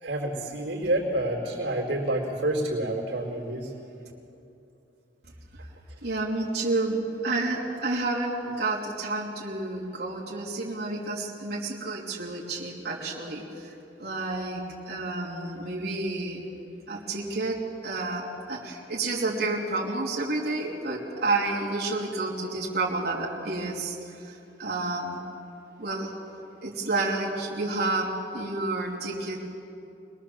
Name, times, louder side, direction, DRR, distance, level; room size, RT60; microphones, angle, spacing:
voice 1, 0.0-3.7, right 1 dB, 90° right, 0 dB, 4.0 m, -28 dB
voice 2, 6.0-16.4 16.9-25.2 25.8-26.1 26.6-29.4, right 2 dB, 60° right, -5 dB, 3.6 m, -30 dB
26.0 x 20.5 x 7.4 m, 2.8 s
head